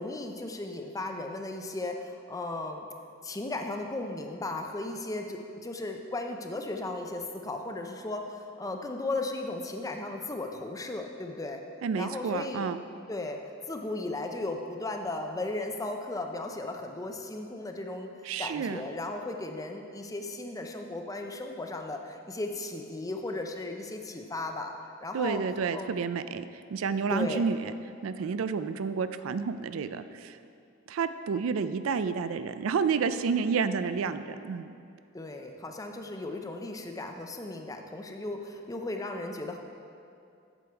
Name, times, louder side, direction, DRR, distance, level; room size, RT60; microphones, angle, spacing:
voice 1, 0.0-2.9 3.2-11.6 12.0-12.7 13.1-13.4 13.7-24.7 25.0-25.4 25.7-26.0 27.1-27.5 35.1-39.6, left 2 dB, 15° left, 4 dB, 0.5 m, -36 dB
voice 2, 11.8-12.8 18.3-18.8 25.1-26.4 26.7-27.7 28.0-30.4 30.9-34.8, right 5 dB, 90° right, 12 dB, 0.4 m, -30 dB
8.2 x 7.0 x 4.5 m, 2.5 s
head